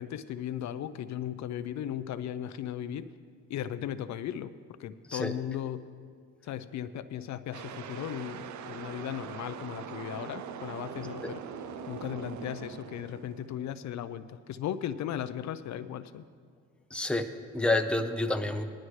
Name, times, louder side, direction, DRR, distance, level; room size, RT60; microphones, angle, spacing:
voice 1, 0.0-3.1 3.5-4.5 4.8-5.9 6.4-11.4 11.9-16.2, left 10 dB, 65° left, 12 dB, 0.5 m, -36 dB
sound 1, 7.5-13.8, right 7 dB, 70° right, 0.6 m, -42 dB
voice 2, 16.9-18.6, left 2 dB, 5° left, 5 dB, 0.8 m, -29 dB
18.5 x 11.5 x 3.2 m, 2.1 s
cardioid pair, 90°, 30 cm